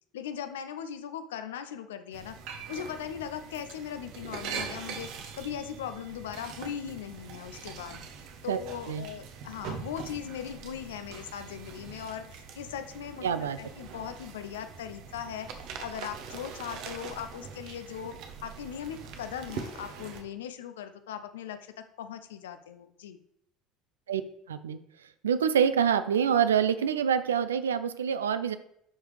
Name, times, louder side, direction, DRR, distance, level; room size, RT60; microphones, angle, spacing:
voice 1, 0.1-2.4 2.7-5.1 5.4-8.0 8.4-15.5 15.8-18.1 18.4-23.2, left 9 dB, 70° left, 10 dB, 0.5 m, -39 dB
sound 1, 2.1-20.2, right 6 dB, 55° right, 0.9 m, -43 dB
voice 2, 13.2-13.6 24.1-24.2 24.5-24.8 25.2-28.6, right 8 dB, 75° right, 12 dB, 0.4 m, -26 dB
11.0 x 4.7 x 3.3 m, 0.74 s
figure-of-eight pair, 65°, 0 cm